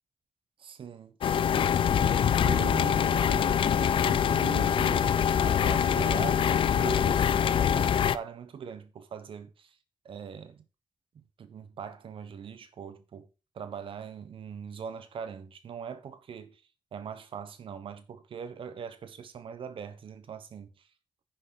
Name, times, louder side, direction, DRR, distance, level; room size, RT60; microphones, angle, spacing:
voice 1, 0.6-1.7 2.4-9.7 10.0-10.6 11.1-13.3 13.5-16.6 16.9-20.7, right 7 dB, 85° right, 1.2 m, -41 dB
sound 1, 1.2-8.2, left 8 dB, 85° left, 0.5 m, -24 dB
10.0 x 6.3 x 4.1 m
wide cardioid pair, 130°, 9 cm